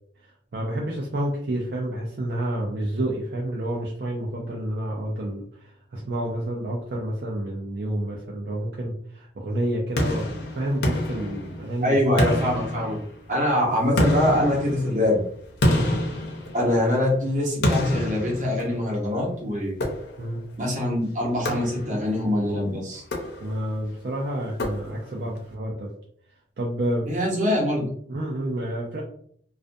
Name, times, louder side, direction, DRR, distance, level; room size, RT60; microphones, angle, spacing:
voice 1, 0.5-10.3 10.5-12.4 13.6-13.7 14.3-14.6 15.6-15.9 20.2-20.4 21.5-21.6 21.8-22.0 23.4-25.9 26.6-27.1 28.1-29.0, right 1 dB, 60° right, -3 dB, 0.5 m, -29 dB
sound 1, 10.0-11.8 12.2-13.3 14.0-17.0 17.6-19.0 19.8-20.4 21.5-22.2 23.0-23.8 24.6-25.3, left 1 dB, 65° left, 0.5 m, -27 dB
voice 2, 11.8-13.0 13.3-15.2 16.5-19.8 20.6-23.0 27.1-27.9, left 1 dB, 40° right, -2 dB, 0.8 m, -23 dB
2.4 x 2.2 x 2.5 m, 0.62 s
head